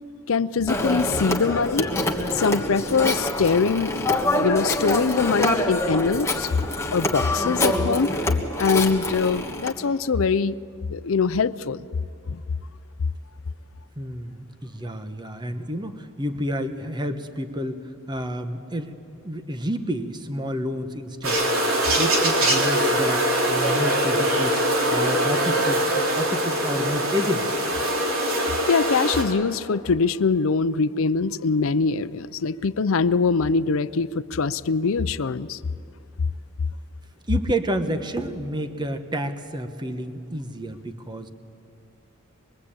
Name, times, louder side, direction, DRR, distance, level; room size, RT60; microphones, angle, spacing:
voice 1, 0.3-1.9 2.3-4.0 4.3-6.5 6.9-8.1 8.6-10.5 10.9-11.8 12.3-12.4 28.7-35.6, left 5 dB, 70° left, 13 dB, 0.6 m, -23 dB
Telephone, 0.7-9.8, left 1 dB, 15° left, 1.5 m, -25 dB
voice 2, 14.0-18.9 19.2-24.6 24.9-27.5 37.3-41.3, equal, 20° right, 8 dB, 1.1 m, -30 dB
sound 1, 21.2-29.2, right 1 dB, 75° right, 3.7 m, -22 dB
24.0 x 22.5 x 8.7 m, 2.5 s
head